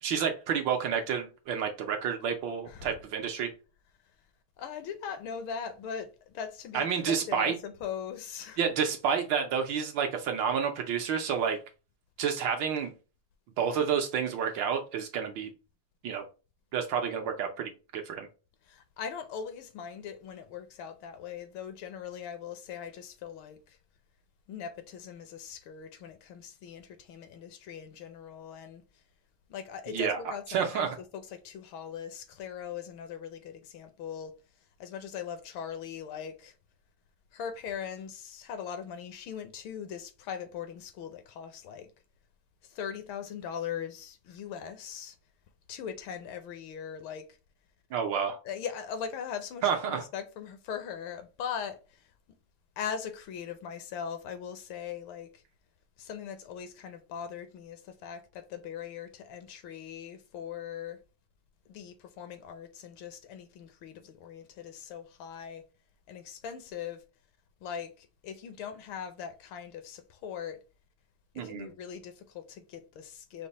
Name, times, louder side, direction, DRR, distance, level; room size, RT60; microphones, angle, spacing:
voice 1, 0.0-3.5 6.7-7.6 8.6-11.6 12.2-12.9 13.6-15.5 16.0-16.2 16.7-18.3 29.9-31.0 47.9-48.4 49.6-50.0 71.4-71.7, right 7 dB, 70° right, 1.3 m, -30 dB
voice 2, 2.7-3.0 4.6-8.6 18.6-23.8 24.5-29.0 29.5-34.3 34.8-36.6 37.3-41.9 42.6-45.2 45.7-47.3 48.4-52.1 52.8-55.4 56.0-61.0 61.7-65.6 66.1-67.0 67.6-70.6 71.3-73.5, left 8 dB, 75° left, 1.4 m, -40 dB
5.2 x 2.1 x 4.0 m
omnidirectional pair, 2.4 m